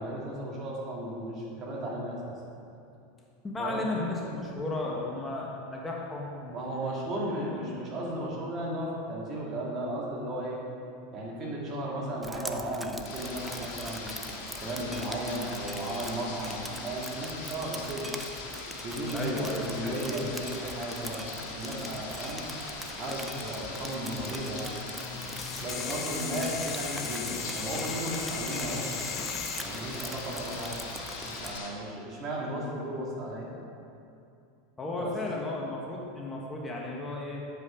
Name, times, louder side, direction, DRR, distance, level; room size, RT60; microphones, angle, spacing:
voice 1, 0.0-2.3 3.6-3.8 6.5-10.6 11.1-14.1 14.6-18.1 18.8-22.4 22.9-24.7 25.6-28.9 29.6-30.8 31.2-33.5 35.0-35.1, right 1 dB, 40° right, -3 dB, 2.1 m, -35 dB
voice 2, 3.4-6.9 7.3-7.7 19.1-20.0 34.8-37.5, left 2 dB, 15° left, -2 dB, 1.3 m, -34 dB
Drip, 12.2-31.6, right 1 dB, 10° right, 0.5 m, -44 dB
sound 1, 13.0-31.7, left 3 dB, 65° left, 1.9 m, -40 dB
sound 2, 25.0-30.9, left 6 dB, 35° left, 0.8 m, -38 dB
9.4 x 5.4 x 5.0 m, 2.6 s
hypercardioid pair, 110°, 0 cm